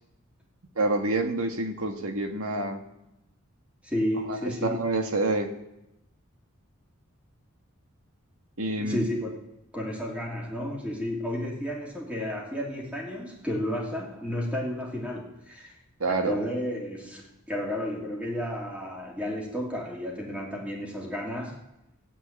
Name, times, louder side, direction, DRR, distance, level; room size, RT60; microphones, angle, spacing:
voice 1, 0.7-2.8 4.3-5.5 8.6-9.0 16.0-16.4, right 2 dB, 80° right, 5 dB, 1.7 m, -27 dB
voice 2, 3.8-4.9 8.8-9.3 9.7-15.8 16.1-21.6, equal, 5° right, -2 dB, 2.7 m, -32 dB
17.5 x 8.5 x 8.7 m, 0.90 s
head